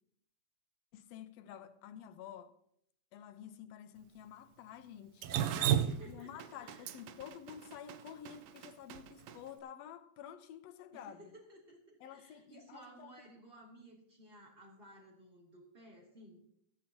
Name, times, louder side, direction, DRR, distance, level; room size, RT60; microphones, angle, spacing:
voice 1, 0.9-2.5 3.1-5.3 6.1-11.3 12.0-13.1, left 9 dB, 70° left, 1.9 m, -50 dB
Drip, 5.2-9.3, right 10 dB, 75° right, 1.7 m, -34 dB
voice 2, 5.7-7.0 10.9-16.4, right 1 dB, 20° right, 3.4 m, -57 dB
17.5 x 11.5 x 2.9 m
omnidirectional pair, 3.4 m